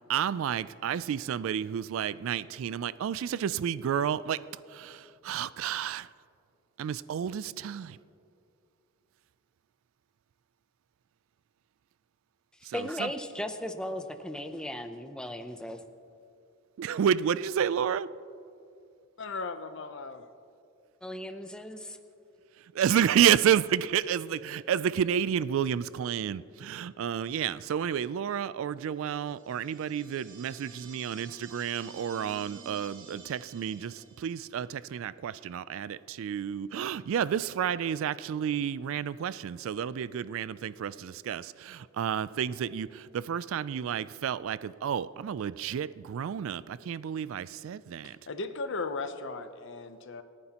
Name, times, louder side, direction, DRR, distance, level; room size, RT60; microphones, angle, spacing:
voice 1, 0.1-4.4 4.7-6.1 6.8-8.0 12.6-13.1 16.8-18.1 22.7-48.2, right 8 dB, 65° right, 17 dB, 0.3 m, -30 dB
voice 2, 12.7-15.8 21.0-22.0, left 1 dB, 5° left, 8 dB, 0.5 m, -36 dB
voice 3, 19.2-20.2 48.0-50.2, left 3 dB, 55° left, 10 dB, 0.7 m, -37 dB
sound 1, 29.2-34.6, right 4 dB, 85° right, 2.4 m, -51 dB
29.0 x 9.7 x 2.9 m, 2.5 s
head